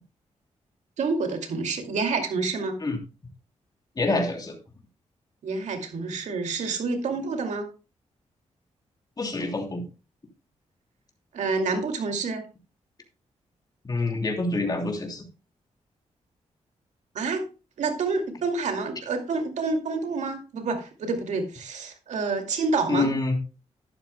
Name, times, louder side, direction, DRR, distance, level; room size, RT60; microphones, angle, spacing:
voice 1, 1.0-2.8 5.4-7.7 11.3-12.4 17.1-17.5 17.8-23.1, right 4 dB, 85° right, 5 dB, 2.4 m, -28 dB
voice 2, 4.0-4.5 9.2-9.8 13.8-15.2 22.9-23.4, left 2 dB, 35° left, 3 dB, 3.0 m, -26 dB
12.0 x 11.5 x 2.2 m, 0.31 s
cardioid pair, 85°, 12 cm